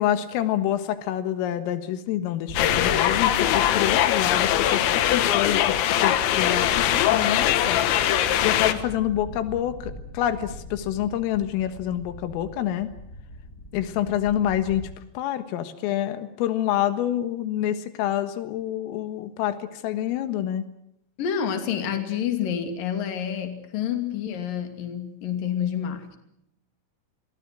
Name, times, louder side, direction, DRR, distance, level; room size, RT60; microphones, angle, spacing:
voice 1, 0.0-7.8 8.4-12.9 13.7-14.9 15.2-20.6, left 11 dB, 90° left, 10 dB, 4.2 m, -27 dB
sound 1, 2.5-14.9, left 1 dB, 20° left, 5.4 m, -39 dB
sound 2, 2.6-8.7, left 11 dB, 70° left, 3.5 m, -21 dB
voice 2, 21.2-26.2, left 8 dB, 50° left, 6 dB, 3.9 m, -28 dB
29.5 x 22.5 x 6.2 m, 0.77 s
omnidirectional pair, 5.7 m